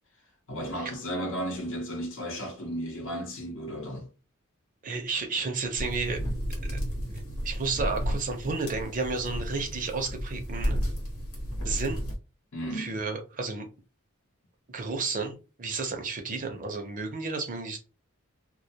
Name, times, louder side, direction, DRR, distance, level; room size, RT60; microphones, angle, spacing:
voice 1, 0.5-4.1 12.5-12.9, equal, 65° left, 0.7 m, -34 dB
voice 2, 4.8-6.2 7.4-10.7 11.6-12.0 12.7-13.7 14.7-17.8, right 4 dB, 40° right, 0.6 m, -32 dB
sound 1, 5.8-12.1, equal, 90° left, 1.0 m, -32 dB
2.2 x 2.2 x 2.8 m
head